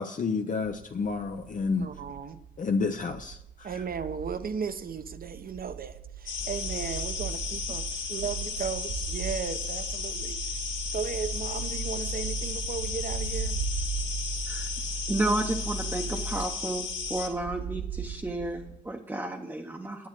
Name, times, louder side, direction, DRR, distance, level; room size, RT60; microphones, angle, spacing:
voice 1, 0.0-1.9 2.6-3.7, left 4 dB, 40° left, 5 dB, 0.6 m, -30 dB
sound 1, 0.6-18.9, right 8 dB, 85° right, 0.8 m, -42 dB
voice 2, 1.8-2.4 3.6-10.6 10.9-13.6, right 6 dB, 50° right, 11 dB, 0.9 m, -36 dB
sound 2, 6.3-17.3, left 5 dB, 90° left, 2.2 m, -35 dB
sound 3, 6.4-16.5, right 2 dB, 70° left, 1.0 m, -37 dB
voice 3, 15.1-20.1, right 2 dB, 10° right, 1 dB, 0.8 m, -32 dB
10.5 x 8.7 x 6.0 m, 0.77 s
wide cardioid pair, 145°, 20 cm